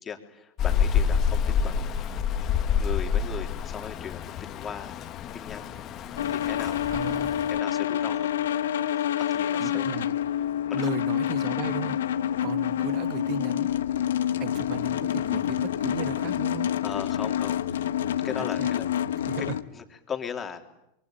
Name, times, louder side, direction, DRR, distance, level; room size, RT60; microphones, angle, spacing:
voice 1, 0.0-1.9 2.8-5.0 5.3-5.7 6.3-6.8 7.5-8.3 8.9-9.9 10.7-11.0 16.8-18.0 18.2-18.9 19.4-19.5 19.7-20.7, left 7 dB, 25° left, 4 dB, 3.6 m, -38 dB
Rain, 0.6-7.6, left 7 dB, 40° left, 2.1 m, -28 dB
sound 1, 6.2-19.6, left 10 dB, 85° left, 1.4 m, -27 dB
voice 2, 6.9-7.4 9.6-10.2 10.7-13.7 14.4-16.7 18.4-18.7 19.2-19.5, right 11 dB, 50° right, 13 dB, 1.5 m, -36 dB
28.0 x 23.0 x 9.2 m, 0.85 s
hypercardioid pair, 100°, 0 cm